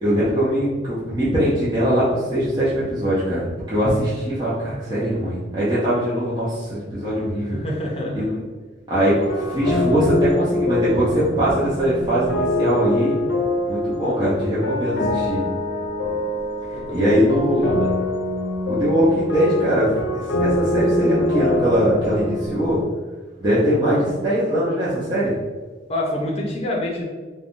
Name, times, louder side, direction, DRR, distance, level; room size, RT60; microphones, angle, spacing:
voice 1, 0.0-7.6 8.1-8.4 8.9-13.2 13.7-15.4 16.9-17.8 18.7-22.8 23.4-25.4, equal, 25° right, -10 dB, 0.6 m, -21 dB
voice 2, 7.2-8.3 16.7-17.9 25.9-27.0, left 1 dB, 35° left, -2 dB, 0.5 m, -28 dB
sound 1, 9.2-22.9, left 1 dB, 85° left, 0.5 m, -24 dB
3.3 x 2.1 x 2.5 m, 1.4 s
head